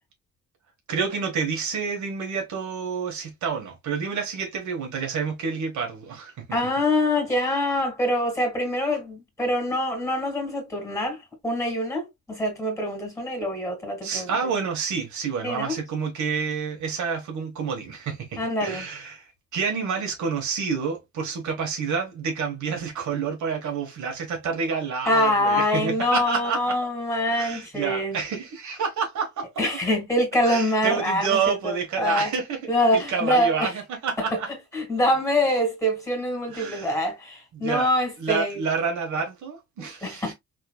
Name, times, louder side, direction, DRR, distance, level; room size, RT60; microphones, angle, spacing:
voice 1, 0.9-6.3 14.0-19.2 19.5-26.8 27.3-29.5 30.4-32.6 32.9-34.5 36.5-36.9 37.5-37.9 38.2-40.3, right 5 dB, 70° right, 1.5 m, -28 dB
voice 2, 6.5-11.2 11.4-14.3 15.4-15.8 18.4-18.9 25.1-28.2 29.6-32.3 32.7-33.7 34.7-38.6 39.8-40.3, left 1 dB, 10° left, 2.4 m, -25 dB
3.7 x 3.3 x 2.4 m
cardioid pair, 90°, 30 cm